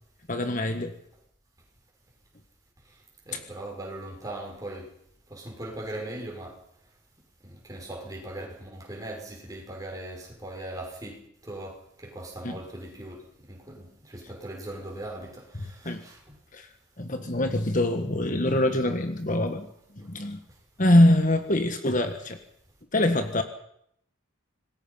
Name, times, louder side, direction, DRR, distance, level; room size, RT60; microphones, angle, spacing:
voice 1, 0.3-0.9 3.3-3.4 12.4-12.6 15.8-16.0 16.5-16.7 17.0-19.7 20.0-20.4 20.8-22.4 22.9-23.4, left 1 dB, 35° left, 7 dB, 1.5 m, -23 dB
voice 2, 3.3-4.9 5.3-6.5 7.4-13.2 13.5-16.4, right 1 dB, 15° right, 0 dB, 6.4 m, -39 dB
26.5 x 20.5 x 5.8 m, 0.72 s
head